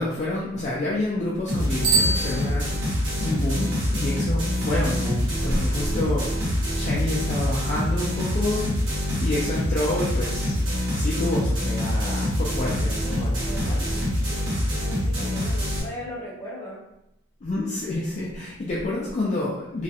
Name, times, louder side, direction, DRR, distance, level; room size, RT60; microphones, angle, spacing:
voice 1, 0.0-2.7 3.2-8.9 9.2-10.7 10.9-14.0 17.4-19.8, left 1 dB, 35° left, -6 dB, 0.3 m, -28 dB
sound 1, 1.5-15.8, equal, 75° right, 1.0 m, -25 dB
Bicycle bell, 1.8-3.1, right 3 dB, 50° right, 0.6 m, -25 dB
voice 2, 12.9-16.8, left 1 dB, 15° left, -6 dB, 0.7 m, -39 dB
2.3 x 2.0 x 2.7 m, 0.82 s
head